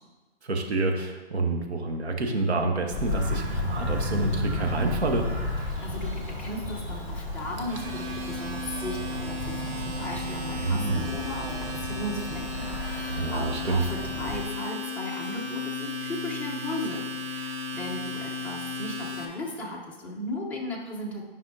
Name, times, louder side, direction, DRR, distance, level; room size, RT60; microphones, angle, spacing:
voice 1, 0.5-5.3 10.6-11.1 13.1-13.8, right 3 dB, 80° right, 3 dB, 1.3 m, -28 dB
Bird vocalization bird call bird song, 2.9-14.4, left 1 dB, 10° right, 1.7 m, -33 dB
voice 2, 5.6-21.3, left 1 dB, 5° left, -5 dB, 0.7 m, -36 dB
Domestic sounds home sounds, 7.6-19.2, left 3 dB, 30° right, 0.9 m, -35 dB
9.9 x 5.5 x 2.7 m, 1.2 s
hypercardioid pair, 140°, 32 cm